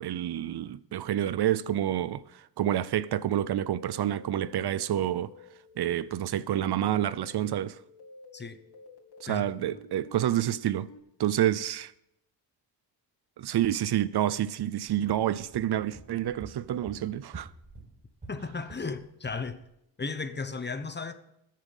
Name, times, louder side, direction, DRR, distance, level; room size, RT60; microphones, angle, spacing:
voice 1, 0.0-5.3 5.8-7.8 9.2-10.9 11.2-11.9 13.4-17.5, right 11 dB, 70° right, 0.6 m, -28 dB
sound 1, 3.5-11.0, left 2 dB, 75° left, 2.9 m, -51 dB
sound 2, 14.8-19.0 19.2-19.5, right 3 dB, 20° right, 4.7 m, -49 dB
voice 2, 18.3-19.6 20.0-21.1, left 4 dB, 25° left, 1.1 m, -35 dB
21.0 x 7.5 x 5.4 m
wide cardioid pair, 115°, 41 cm